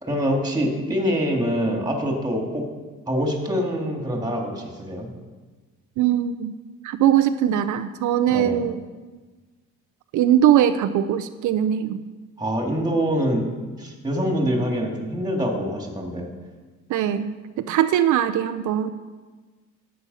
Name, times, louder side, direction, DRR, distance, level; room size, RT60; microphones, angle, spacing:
voice 1, 0.0-2.7 3.1-5.1 8.3-8.6 12.4-13.4 13.8-16.3, equal, 15° right, 1 dB, 2.7 m, -25 dB
voice 2, 6.0-6.5 6.8-8.8 10.1-12.0 16.9-17.3 17.7-18.9, right 10 dB, 80° right, 9 dB, 0.6 m, -20 dB
11.0 x 8.7 x 5.6 m, 1.3 s
cardioid pair, 90°, 30 cm